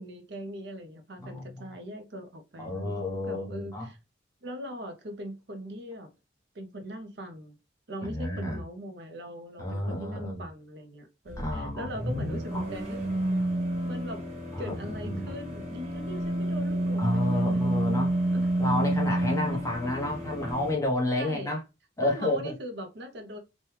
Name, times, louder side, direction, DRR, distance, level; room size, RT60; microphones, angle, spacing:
voice 1, 0.0-4.0 4.4-6.1 6.5-7.6 7.9-13.0 13.8-14.3 14.6-18.0 18.3-18.5 19.5-20.0 21.2-21.5 22.0-23.4, equal, 55° right, 0.6 m, -41 dB
voice 2, 1.2-1.6 2.6-3.9 8.0-8.6 9.6-10.4 11.4-12.7 14.5-15.3 17.0-18.2 18.6-21.6 22.0-22.5, left 1 dB, 15° left, 0.8 m, -31 dB
sound 1, 11.3-20.8, right 1 dB, 35° right, 1.1 m, -29 dB
3.0 x 2.2 x 3.1 m
head